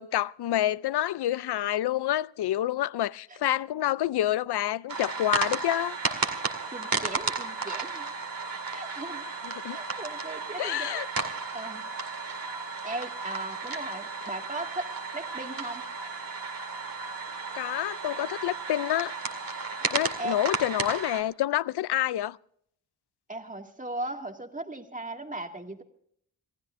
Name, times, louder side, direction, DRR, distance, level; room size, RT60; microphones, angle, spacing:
voice 1, 0.0-6.0 9.4-9.8 10.6-11.1 17.5-19.1 19.9-22.4, left 13 dB, 60° left, 0.5 m, -28 dB
sound 1, 4.9-21.2, right 4 dB, 45° right, 2.2 m, -33 dB
voice 2, 6.7-8.1 8.7-9.3 9.7-11.0 11.3-11.8 12.8-14.9 15.1-15.8 19.8-20.4 23.3-25.8, right 2 dB, 15° right, 2.1 m, -38 dB
27.0 x 15.0 x 2.6 m
cardioid pair, 55°, 47 cm